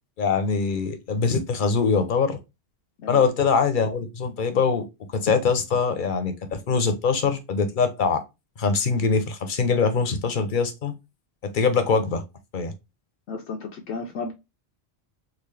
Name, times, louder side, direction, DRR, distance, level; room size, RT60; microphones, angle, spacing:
voice 1, 0.2-2.4 3.1-4.8 5.1-8.2 8.6-10.9 11.4-12.2 12.5-12.7, left 5 dB, 50° left, 0.8 m, -23 dB
voice 2, 3.0-3.3 13.3-14.3, left 4 dB, 85° left, 0.9 m, -33 dB
3.7 x 2.5 x 3.2 m
omnidirectional pair, 1.1 m